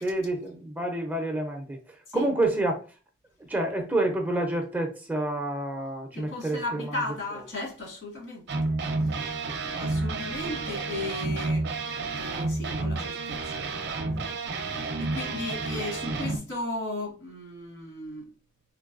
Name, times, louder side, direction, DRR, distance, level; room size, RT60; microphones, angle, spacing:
voice 1, 0.0-2.8 3.5-7.0, right 1 dB, 10° right, 0.5 m, -28 dB
voice 2, 6.1-8.6 9.1-9.5 9.8-11.6 12.2-13.7 14.1-14.3 14.6-18.2, left 2 dB, 70° left, 1.8 m, -36 dB
sound 1, 8.5-16.4, right 3 dB, 55° right, 0.5 m, -30 dB
3.8 x 3.1 x 2.5 m
head